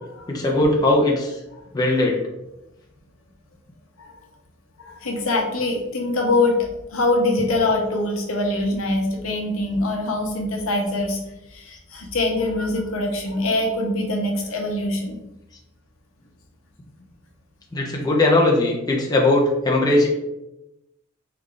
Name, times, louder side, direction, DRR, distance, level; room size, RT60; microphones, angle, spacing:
voice 1, 0.3-1.3 1.7-2.2 17.7-20.1, left 2 dB, 20° left, -2 dB, 0.5 m, -19 dB
voice 2, 4.8-11.2 11.5-15.2, left 2 dB, 75° left, 1 dB, 0.7 m, -23 dB
3.2 x 2.4 x 3.7 m, 0.92 s
head